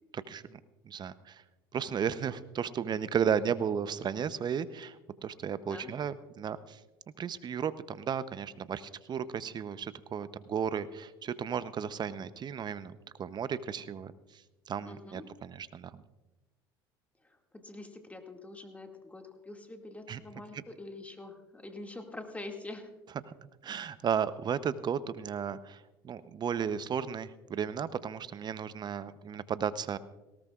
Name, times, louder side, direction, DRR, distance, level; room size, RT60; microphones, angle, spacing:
voice 1, 0.1-0.6 0.8-1.4 1.7-6.8 7.2-14.4 14.7-16.0 20.1-20.2 20.5-20.6 23.6-30.0, right 7 dB, 35° right, 15 dB, 0.8 m, -34 dB
voice 2, 14.8-15.2 17.2-22.9, left 2 dB, 10° left, 3 dB, 2.2 m, -45 dB
19.0 x 17.5 x 2.5 m, 1.1 s
hypercardioid pair, 80°, 12 cm